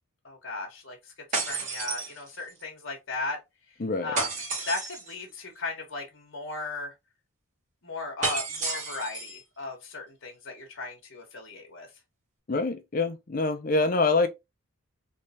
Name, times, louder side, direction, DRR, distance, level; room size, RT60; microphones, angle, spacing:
voice 1, 0.2-3.4 4.0-4.3 4.6-6.9 7.8-11.9, left 3 dB, 60° left, 1.2 m, -36 dB
sound 1, 1.3-2.6 4.1-5.2 8.2-9.4, right 3 dB, 35° right, 1.6 m, -31 dB
voice 2, 3.8-4.1 12.5-14.3, left 3 dB, 40° left, 0.5 m, -25 dB
3.3 x 3.2 x 2.8 m
head